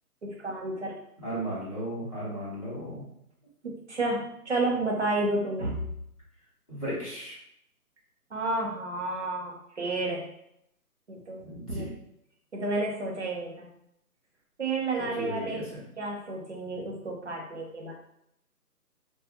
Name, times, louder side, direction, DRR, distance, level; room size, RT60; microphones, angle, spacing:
voice 1, 0.2-1.0 3.6-5.9 8.3-10.3 11.1-11.9 12.5-13.7 14.6-15.6 16.0-17.9, right 2 dB, 50° right, -1 dB, 0.6 m, -31 dB
voice 2, 1.2-3.0 6.7-7.4 11.4-11.9 15.0-15.8, equal, 25° left, -12 dB, 0.9 m, -35 dB
2.5 x 2.3 x 2.7 m, 0.76 s
hypercardioid pair, 175°, 47 cm